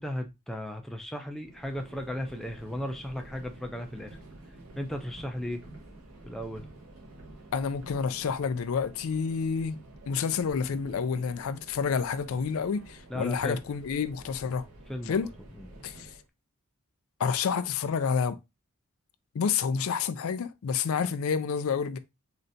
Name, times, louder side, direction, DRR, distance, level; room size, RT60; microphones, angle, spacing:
voice 1, 0.0-4.2 4.8-5.6 6.3-6.7 13.1-13.6 14.9-15.3 15.6-15.7, left 1 dB, ahead, 0.4 m, -35 dB
Subway metro underground, 1.4-16.3, right 2 dB, 70° right, 1.3 m, -49 dB
voice 2, 7.5-9.8 10.1-14.6 15.1-15.3 15.8-16.1 17.2-18.4 19.3-22.0, left 6 dB, 70° left, 0.4 m, -29 dB
3.9 x 3.2 x 2.7 m
head